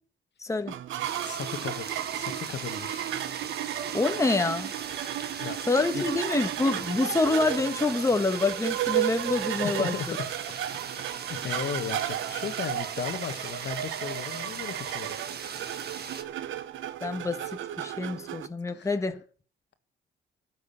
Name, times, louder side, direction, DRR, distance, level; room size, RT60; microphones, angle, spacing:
voice 1, 0.4-0.7 3.9-4.7 5.7-10.2 17.0-17.4 17.8-19.2, left 3 dB, 15° left, 1.3 m, -26 dB
sound 1, 0.7-18.5, right 12 dB, 75° right, 0.9 m, -34 dB
sound 2, 1.0-16.2, right 6 dB, 55° right, 1.6 m, -39 dB
voice 2, 1.2-1.9 2.1-3.0 5.4-5.6 5.9-6.1 9.0-9.1 9.6-10.2 11.3-15.2 18.7-18.9, left 8 dB, 60° left, 1.5 m, -36 dB
12.0 x 6.4 x 8.8 m
cardioid pair, 90°, 20 cm